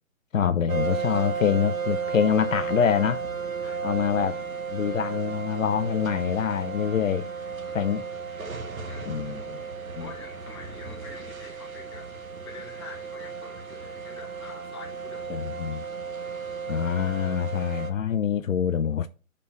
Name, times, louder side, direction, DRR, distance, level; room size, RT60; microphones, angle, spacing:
voice 1, 0.3-3.2 3.8-4.4 4.7-7.3 7.7-8.0 9.1-9.6 10.0-10.1 15.3-15.8 16.7-19.1, left 8 dB, 70° left, 0.5 m, -25 dB
sound 1, 0.7-17.9, right 5 dB, 75° right, 1.1 m, -34 dB
voice 2, 3.6-3.9 8.9-9.2 10.0-12.1 12.4-15.5, left 3 dB, 20° left, 0.9 m, -46 dB
10.5 x 4.2 x 2.5 m
figure-of-eight pair, 155°, 42 cm